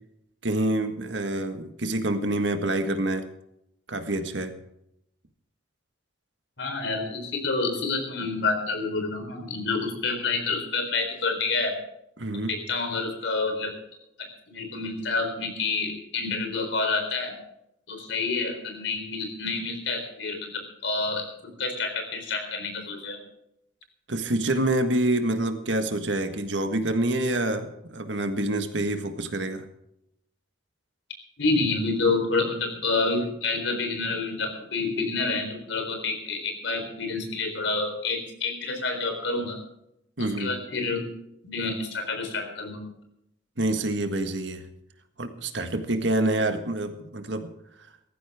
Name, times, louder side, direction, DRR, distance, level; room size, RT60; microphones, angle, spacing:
voice 1, 0.4-3.3 3.9-4.5 12.2-12.5 24.1-29.6 40.2-40.5 43.6-44.6 45.2-47.5, right 1 dB, 75° right, 7 dB, 1.7 m, -27 dB
voice 2, 6.6-11.7 12.5-13.7 14.5-17.3 17.9-23.2 31.4-39.6 40.2-41.1 41.4-42.8, left 3 dB, 75° left, 4 dB, 4.1 m, -28 dB
18.0 x 14.5 x 3.6 m, 0.80 s
head